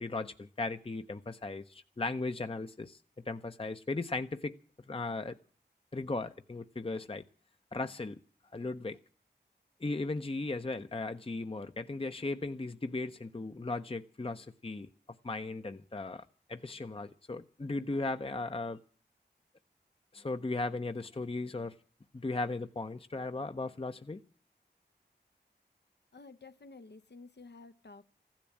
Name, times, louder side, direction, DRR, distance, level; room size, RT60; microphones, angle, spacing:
voice 1, 0.0-3.0 3.3-4.5 4.9-5.4 5.9-7.2 7.7-8.2 8.5-9.0 9.8-14.9 15.2-18.8 20.1-21.7 22.1-24.2, left 3 dB, 30° left, 0.6 m, -37 dB
voice 2, 26.1-28.0, left 3 dB, 70° left, 0.8 m, -52 dB
15.0 x 10.5 x 8.5 m
wide cardioid pair, 50°, 18 cm